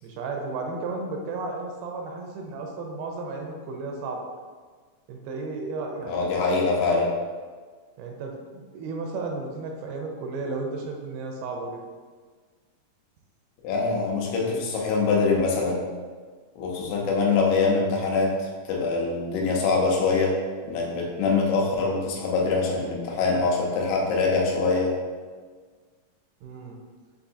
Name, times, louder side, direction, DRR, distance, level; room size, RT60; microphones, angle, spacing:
voice 1, 0.0-4.3 5.1-6.3 8.0-11.8 16.9-17.1 26.4-26.8, right 3 dB, 80° right, 1 dB, 2.4 m, -34 dB
voice 2, 6.0-7.1 13.6-15.8 16.6-20.3 20.7-24.9, left 4 dB, 85° left, -1 dB, 2.6 m, -24 dB
6.7 x 2.6 x 2.5 m, 1.5 s
omnidirectional pair, 4.5 m